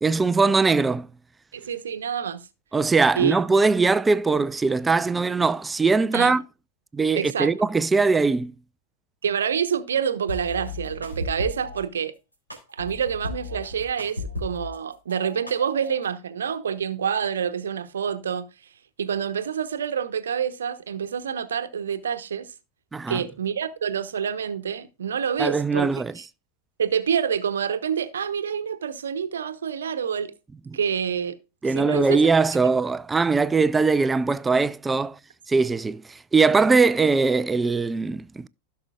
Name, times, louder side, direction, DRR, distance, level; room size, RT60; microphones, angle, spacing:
voice 1, 0.0-1.1 2.7-6.4 6.9-8.5 22.9-23.2 25.4-26.1 31.6-35.2 35.5-38.5, right 4 dB, 10° right, 0.4 m, -21 dB
voice 2, 1.5-2.4 3.2-3.3 6.1-6.4 7.1-7.5 9.2-12.1 12.7-18.5 19.0-22.5 23.1-25.9 26.8-30.3 30.7-31.3 31.7-32.3, right 7 dB, 65° right, 0.9 m, -27 dB
sound 1, 10.3-11.8 12.5-14.8 15.1-16.1, left 2 dB, 85° left, 3.6 m, -35 dB
15.5 x 6.5 x 2.4 m
figure-of-eight pair, 90°, 0 cm